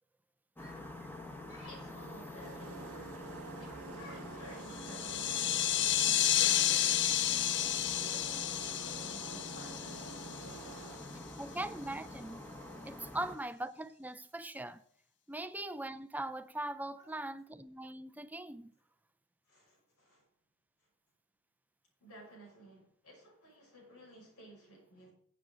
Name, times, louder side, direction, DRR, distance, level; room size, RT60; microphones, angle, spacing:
voice 1, 0.6-1.0 1.5-7.2 7.5-10.0 16.9-17.2 19.5-20.2 22.0-25.1, equal, 75° left, 5.8 m, -54 dB
sound 1, 0.6-13.4, left 1 dB, 10° left, 1.5 m, -46 dB
sound 2, 2.4-11.2, right 5 dB, 75° right, 0.8 m, -50 dB
sound 3, 4.7-10.8, left 12 dB, 55° left, 0.5 m, -31 dB
voice 2, 11.4-12.4 12.8-14.8 15.3-18.7, right 1 dB, 10° right, 0.5 m, -41 dB
15.0 x 8.2 x 3.8 m
head